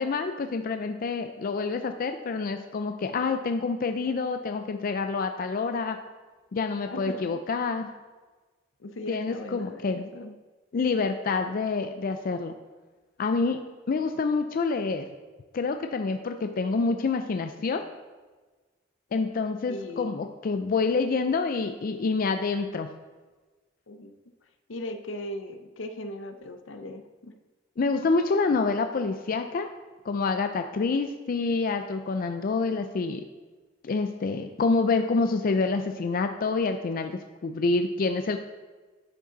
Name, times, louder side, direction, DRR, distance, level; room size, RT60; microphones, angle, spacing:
voice 1, 0.0-6.0 6.5-7.9 9.1-10.1 10.7-12.5 13.2-15.1 15.5-17.8 19.1-22.9 27.8-29.7 30.1-33.2 33.8-38.4, left 4 dB, 50° left, 7 dB, 0.4 m, -27 dB
voice 2, 6.9-7.4 8.8-10.3 19.7-20.1 23.9-24.1 24.7-27.3, left 1 dB, 80° left, 7 dB, 0.7 m, -38 dB
10.5 x 5.1 x 3.9 m, 1.3 s
head